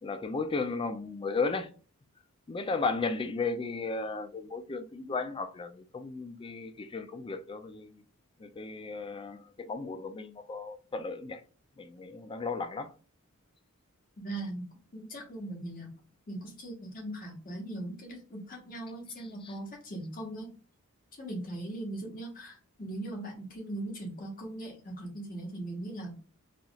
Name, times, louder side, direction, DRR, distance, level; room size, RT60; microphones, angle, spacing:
voice 1, 0.0-1.7 2.5-8.0 8.4-11.4 11.8-12.9 19.4-19.5, left 4 dB, 25° left, 0.4 m, -35 dB
voice 2, 14.2-14.7 14.9-15.9 16.3-20.5 21.1-26.2, right 1 dB, 40° left, 1.3 m, -39 dB
4.0 x 3.0 x 2.3 m
head